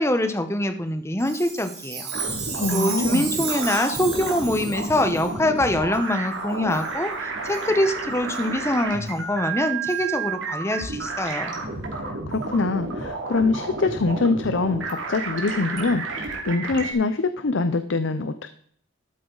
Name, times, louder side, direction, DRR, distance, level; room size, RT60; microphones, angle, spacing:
voice 1, 0.0-2.1 2.7-11.5, left 1 dB, 15° left, 8 dB, 0.9 m, -24 dB
Chime, 1.2-5.3 5.9-6.0 6.7-6.9 7.5-7.6 8.3-8.4 9.1-9.2 9.9-10.0, right 5 dB, 50° right, 4.0 m, -33 dB
sound 1, 2.1-16.9, right 3 dB, 75° right, 2.6 m, -31 dB
voice 2, 2.6-3.2 12.0-18.5, left 3 dB, 70° left, 11 dB, 0.6 m, -24 dB
13.0 x 8.6 x 4.0 m, 0.63 s
head